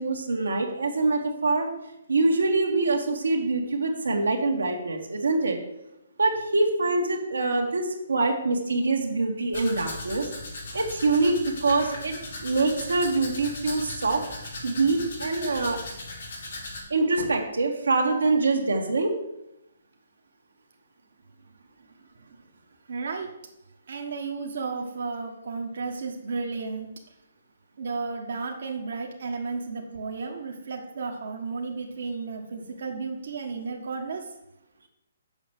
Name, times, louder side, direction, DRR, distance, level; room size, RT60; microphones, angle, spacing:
voice 1, 0.0-1.7 2.1-5.6 6.2-10.3 10.7-11.4 11.6-12.1 12.4-14.2 14.6-15.8 16.9-19.2, right 3 dB, 85° right, 2 dB, 1.8 m, -24 dB
Domestic sounds home sounds, 9.5-16.8, left 2 dB, 75° left, 3.6 m, -38 dB
voice 2, 22.9-23.3 23.9-26.9 27.8-34.2, right 4 dB, 65° right, 2 dB, 1.4 m, -33 dB
7.2 x 5.3 x 7.3 m, 0.86 s
hypercardioid pair, 145°, 0 cm